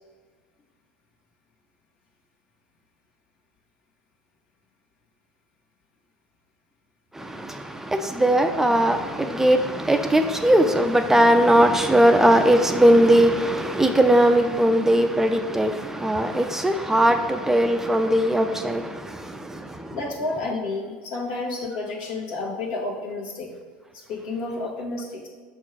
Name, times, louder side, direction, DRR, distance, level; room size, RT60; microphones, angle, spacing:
voice 1, 8.2-9.0 9.3-9.6 9.9-15.7 16.0-18.8, right 1 dB, 10° right, 6 dB, 0.5 m, -18 dB
voice 2, 19.9-23.5 23.9-25.3, left 2 dB, 75° left, -3 dB, 1.9 m, -30 dB
6.5 x 4.4 x 4.6 m, 1.5 s
supercardioid pair, 105°, 5 cm